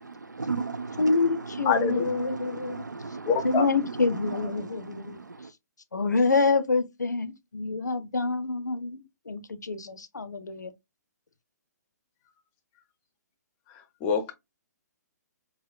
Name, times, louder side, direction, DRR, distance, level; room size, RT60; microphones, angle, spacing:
voice 1, 0.0-1.2 1.5-5.5, right 4 dB, 85° right, 0.4 m, -36 dB
voice 2, 1.0-2.9 3.4-5.2 5.9-9.0 9.3-10.7, left 3 dB, 75° left, 0.5 m, -27 dB
voice 3, 1.7-2.0 3.3-3.6 14.0-14.3, left 6 dB, 25° left, 0.6 m, -25 dB
4.4 x 2.0 x 2.2 m
figure-of-eight pair, 125°, 9 cm